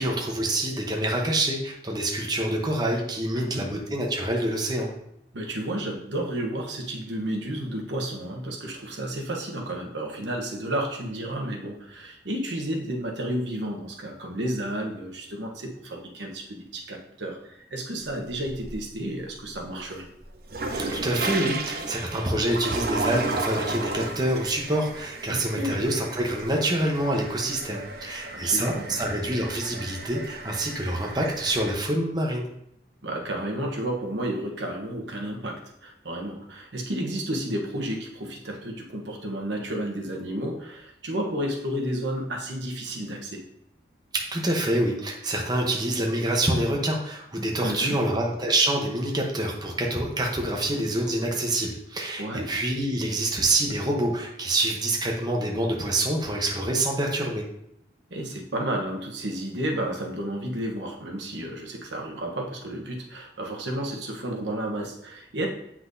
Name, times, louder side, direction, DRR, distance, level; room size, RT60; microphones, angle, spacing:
voice 1, 0.0-4.9 20.9-32.5 44.1-57.4, right 1 dB, 20° right, 0 dB, 0.9 m, -26 dB
voice 2, 3.3-3.7 5.3-20.1 25.3-25.8 28.3-29.0 33.0-43.4 47.6-48.0 52.2-52.5 58.1-65.5, right 1 dB, 80° right, 1 dB, 1.0 m, -32 dB
sound 1, 18.0-19.0 19.4-31.7, right 2 dB, 55° right, 0.7 m, -34 dB
7.8 x 5.8 x 2.7 m, 0.75 s
head